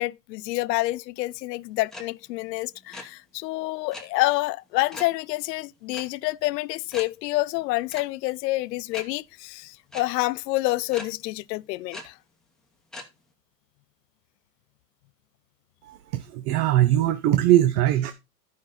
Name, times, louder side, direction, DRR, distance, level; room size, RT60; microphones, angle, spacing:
voice 1, 0.0-12.1, left 19 dB, 85° left, 0.6 m, -28 dB
sound 1, 1.9-2.0 2.3-2.5 2.7-3.0 3.9-4.0 4.9-5.1 5.9-6.0 6.4-6.5 6.9-7.0 7.9-8.0 8.9-9.0 9.9-10.0 10.9-11.0 11.9-12.0 12.9-13.0, left 2 dB, ahead, 1.0 m, -38 dB
voice 2, 15.8-18.1, right 13 dB, 65° right, 0.9 m, -21 dB
11.0 x 5.5 x 3.9 m
supercardioid pair, 155°, 48 cm